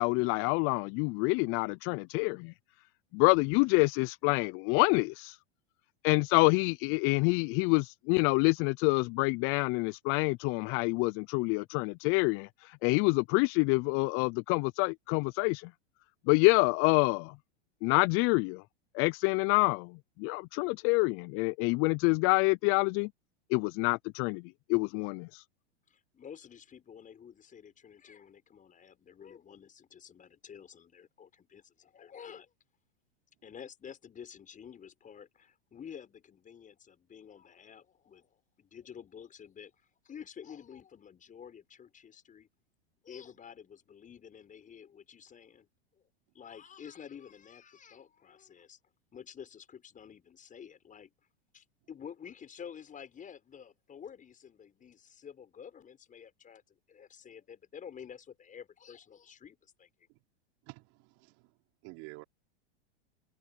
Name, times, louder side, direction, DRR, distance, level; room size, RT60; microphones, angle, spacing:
voice 1, 0.0-2.5 3.1-5.4 6.0-15.7 16.3-17.3 17.8-18.6 18.9-19.9 20.2-23.1 23.5-24.4 24.7-25.4, left 28 dB, 45° left, 0.6 m, -27 dB
voice 2, 25.9-32.5 33.4-39.7 40.0-42.5 43.0-45.7 46.3-48.8 49.1-51.1 51.5-59.9, left 8 dB, 25° left, 7.0 m, -50 dB
voice 3, 60.6-61.5 61.8-62.2, right 25 dB, 50° right, 4.2 m, -49 dB
hypercardioid pair, 110°, 32 cm